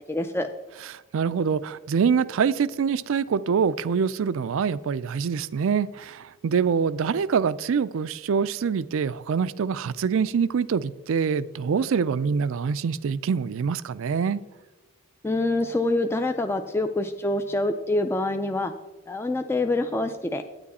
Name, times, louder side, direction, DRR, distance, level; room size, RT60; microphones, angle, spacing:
voice 1, 0.1-0.5 15.2-18.7 19.1-20.4, left 2 dB, 10° left, 0.3 m, -26 dB
voice 2, 0.9-14.4, right 6 dB, 65° right, 0.4 m, -25 dB
9.7 x 9.4 x 4.2 m
head